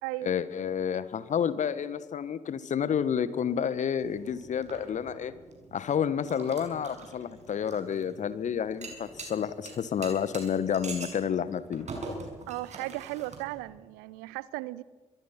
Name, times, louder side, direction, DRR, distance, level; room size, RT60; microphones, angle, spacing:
voice 1, 0.2-5.3 5.7-11.9, left 8 dB, 45° left, 15 dB, 1.4 m, -30 dB
sound 1, 4.0-13.7, right 3 dB, 40° right, 6.4 m, -45 dB
voice 2, 12.5-14.8, right 19 dB, 65° right, 21 dB, 0.6 m, -36 dB
24.5 x 22.0 x 5.8 m, 1.4 s
figure-of-eight pair, 40°, 17 cm